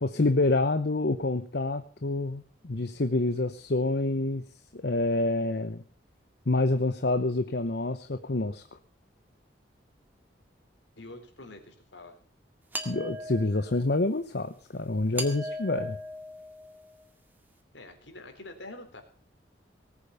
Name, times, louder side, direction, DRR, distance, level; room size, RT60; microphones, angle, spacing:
voice 1, 0.0-4.4 4.7-5.8 6.5-8.6 12.8-16.0, left 2 dB, 60° left, 10 dB, 0.9 m, -27 dB
voice 2, 11.0-12.2 17.7-19.0, left 2 dB, 75° left, 5 dB, 3.9 m, -46 dB
sound 1, 12.7-13.8 15.2-17.0, equal, 10° right, 2.0 m, -38 dB
19.0 x 8.7 x 6.9 m, 0.41 s
head